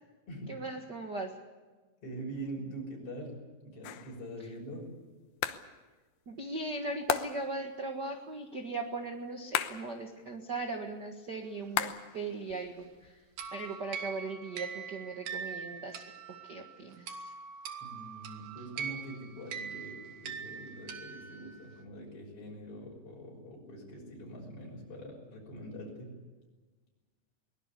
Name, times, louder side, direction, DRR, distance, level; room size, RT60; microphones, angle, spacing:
voice 1, 0.5-1.4 4.4-4.5 6.3-13.2 13.5-17.3, right 3 dB, 40° right, 3 dB, 1.6 m, -39 dB
voice 2, 2.0-3.4 3.7-4.9 17.8-26.1, right 1 dB, 40° left, -2 dB, 7.0 m, -44 dB
sound 1, 3.8-4.2 5.4-5.7 7.1-7.6 9.5-10.0 11.8-12.2 12.5-13.5, left 11 dB, 90° left, 2.9 m, -35 dB
sound 2, 13.4-21.7, right 6 dB, 70° right, 3.3 m, -42 dB
23.0 x 20.0 x 8.4 m, 1.3 s
omnidirectional pair, 4.0 m